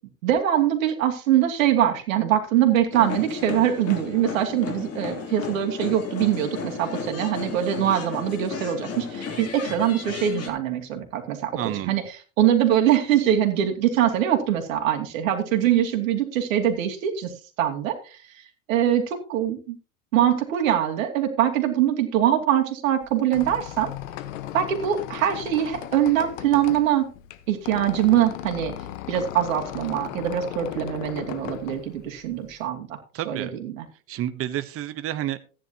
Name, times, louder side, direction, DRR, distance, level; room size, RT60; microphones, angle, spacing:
voice 1, 0.2-19.8 20.1-23.9 24.5-27.1 27.5-28.7 29.1-33.0 33.2-33.9, right 10 dB, 70° right, 4 dB, 2.7 m, -23 dB
sound 1, 2.9-10.5, left 5 dB, 35° left, 3.2 m, -34 dB
voice 2, 11.6-11.9 33.1-33.5 34.1-35.4, right 12 dB, 35° right, 12 dB, 1.0 m, -29 dB
Squeak, 23.0-32.6, left 12 dB, 65° left, 1.3 m, -37 dB
15.0 x 10.0 x 2.9 m, 0.36 s
hypercardioid pair, 100°, 41 cm